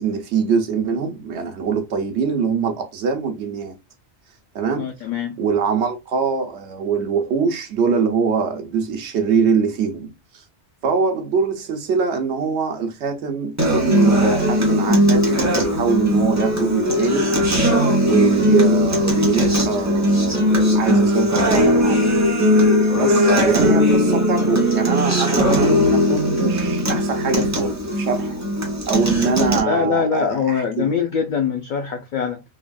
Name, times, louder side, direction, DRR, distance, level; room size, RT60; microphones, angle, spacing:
voice 1, 0.0-3.8 4.5-4.9 5.4-10.4 10.8-17.3 18.0-20.4 20.7-22.2 22.9-28.4 28.9-30.9, right 5 dB, 75° right, 1.0 m, -23 dB
voice 2, 4.8-5.4 29.7-32.4, left 6 dB, 55° left, 0.6 m, -23 dB
Acoustic guitar, 13.6-29.6, equal, 15° right, 0.7 m, -18 dB
3.4 x 2.4 x 2.2 m
omnidirectional pair, 1.1 m